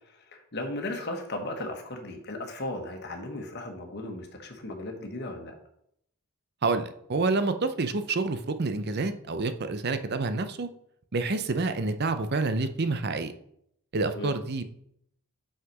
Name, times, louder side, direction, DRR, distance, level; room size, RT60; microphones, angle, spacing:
voice 1, 0.0-5.5 14.1-14.4, left 2 dB, 50° left, 3 dB, 1.4 m, -36 dB
voice 2, 6.6-10.7 11.1-13.3 13.9-14.6, right 3 dB, 50° right, 10 dB, 0.6 m, -28 dB
5.8 x 5.7 x 6.0 m, 0.72 s
head